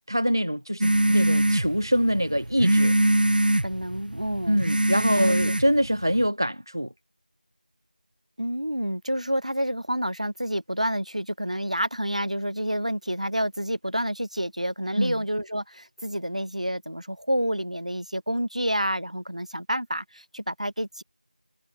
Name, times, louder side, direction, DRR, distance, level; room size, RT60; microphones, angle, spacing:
voice 1, 0.1-2.9 4.5-6.9 15.0-15.1, equal, 25° right, 1.3 m, -24 dB
sound 1, 0.8-6.3, right 1 dB, 75° right, 0.4 m, -23 dB
voice 2, 3.6-4.6 5.2-5.5 8.4-21.0, equal, 50° right, 2.7 m, -29 dB
figure-of-eight pair, 180°, 5 cm